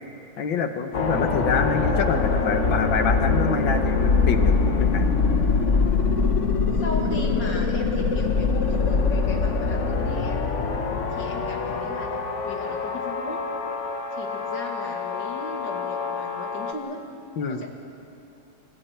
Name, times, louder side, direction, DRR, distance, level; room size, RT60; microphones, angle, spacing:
voice 1, 0.4-5.1 17.4-17.6, left 6 dB, 90° left, 7 dB, 1.9 m, -26 dB
voice 2, 0.9-1.3 1.7-1.9 6.7-10.6 11.1-13.4 14.1-17.0 17.5-17.7, left 2 dB, 70° left, 1 dB, 2.9 m, -37 dB
sound 1, 0.9-16.7, left 4 dB, 45° left, 1.3 m, -24 dB
28.0 x 24.0 x 4.5 m, 2.8 s
omnidirectional pair, 2.0 m